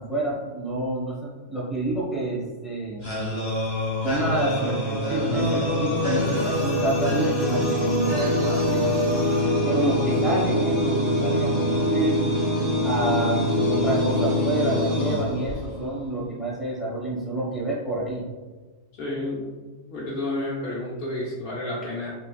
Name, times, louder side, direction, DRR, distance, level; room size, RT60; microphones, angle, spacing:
voice 1, 0.0-3.2 4.0-8.8 9.6-12.2 12.8-18.2, right 2 dB, ahead, -5 dB, 0.9 m, -28 dB
sound 1, 3.0-15.9, left 1 dB, 25° left, 0.9 m, -24 dB
sound 2, 5.9-11.7, equal, 50° right, 0.4 m, -46 dB
voice 2, 19.0-19.4 19.9-22.2, left 1 dB, 55° left, -5 dB, 0.9 m, -30 dB
4.0 x 3.2 x 2.3 m, 1.3 s
omnidirectional pair, 1.2 m